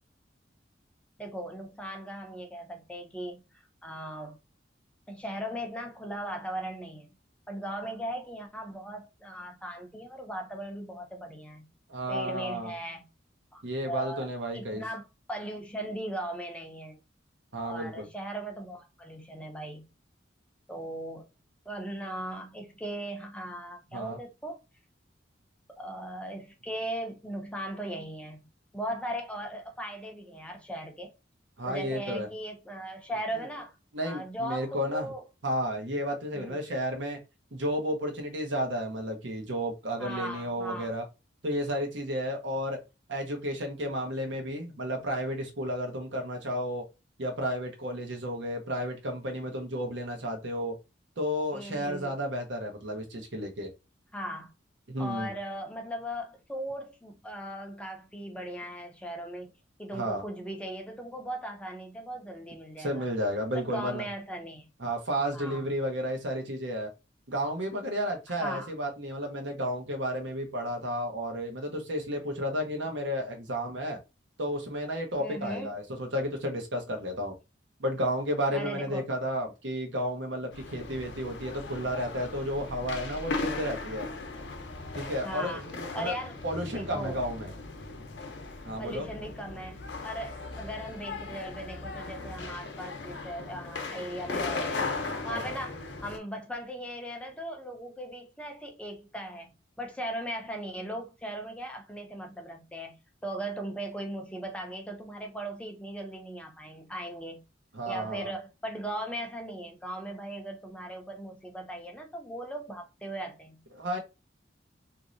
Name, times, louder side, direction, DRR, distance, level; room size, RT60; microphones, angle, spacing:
voice 1, 1.2-4.4 5.1-7.1 7.5-11.7 12.1-13.0 13.5-14.3 14.5-17.0 17.6-19.8 20.7-21.3 21.7-24.6 25.7-28.5 28.7-31.1 31.6-33.8 34.0-35.2 36.3-36.6 40.0-40.9 51.5-52.1 54.1-54.5 55.0-59.5 59.8-63.1 63.5-64.7 65.3-65.7 68.4-68.7 75.2-75.7 78.5-79.0 85.2-85.7 85.9-86.4 86.6-87.2 88.8-94.9 95.2-99.5 99.8-103.0 103.2-107.4 107.9-113.6, right 1 dB, 5° left, 0.5 m, -38 dB
voice 2, 11.9-12.7 13.6-14.8 17.5-18.1 23.9-24.2 31.6-32.3 33.3-33.4 33.9-35.1 35.4-37.2 37.5-41.0 41.4-42.8 43.1-46.8 47.2-50.7 51.2-53.7 54.9-55.3 59.9-60.2 62.8-64.0 64.8-66.9 67.3-74.0 74.4-77.3 77.8-84.1 84.9-86.1 86.4-87.5 88.6-89.0 95.3-95.5 107.7-108.3 113.7-114.0, equal, 75° right, 0.9 m, -32 dB
sound 1, 80.5-96.2, left 3 dB, 65° left, 0.6 m, -37 dB
3.1 x 2.7 x 2.5 m
head